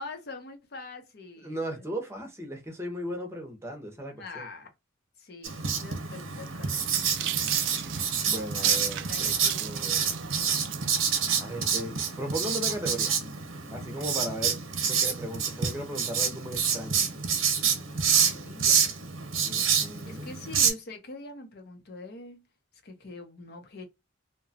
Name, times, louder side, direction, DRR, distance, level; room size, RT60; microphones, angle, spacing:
voice 1, 0.0-1.8 4.1-4.7 5.2-7.1 8.5-9.6 16.9-18.9 20.0-22.4 22.8-23.8, left 2 dB, 55° left, 0.7 m, -44 dB
voice 2, 1.4-4.5 8.2-9.3 9.6-10.2 11.4-13.1 13.7-14.6 14.9-17.0 19.4-20.3, equal, 15° right, 0.7 m, -36 dB
Writing, 5.4-20.7, right 7 dB, 80° right, 0.8 m, -28 dB
sound 1, 6.4-11.2, right 12 dB, 65° right, 0.3 m, -36 dB
2.8 x 2.2 x 2.6 m
head